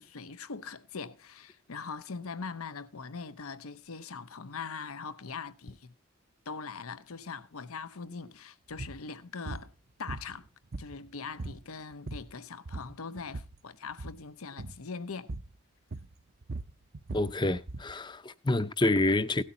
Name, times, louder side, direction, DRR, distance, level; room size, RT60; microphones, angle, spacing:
voice 1, 0.0-5.9 6.5-9.7 10.0-10.5 10.8-15.3, left 5 dB, 85° left, 0.9 m, -41 dB
sound 1, 8.7-9.0 9.5-9.7 10.1-11.1 11.4-11.6 11.9-12.4 12.7-13.6 13.9-14.2 14.6-14.8 15.3-15.5 15.9-17.9, right 2 dB, 45° right, 0.6 m, -40 dB
voice 2, 17.1-19.4, left 2 dB, 20° left, 0.6 m, -28 dB
17.0 x 12.5 x 2.8 m
head